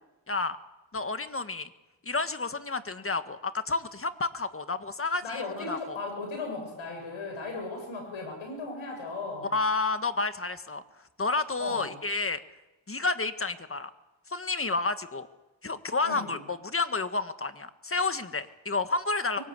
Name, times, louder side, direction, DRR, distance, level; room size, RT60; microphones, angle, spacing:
voice 1, 0.3-0.6 0.9-1.7 2.0-6.0 9.5-10.8 11.2-12.4 12.9-13.9 14.3-15.3 15.6-19.4, left 3 dB, 30° left, 10 dB, 1.7 m, -30 dB
voice 2, 5.2-9.5 11.6-12.0 16.0-16.4 19.4-19.5, left 3 dB, 90° left, 3 dB, 7.9 m, -36 dB
23.5 x 19.0 x 8.4 m, 1.0 s
cardioid pair, 70°, 46 cm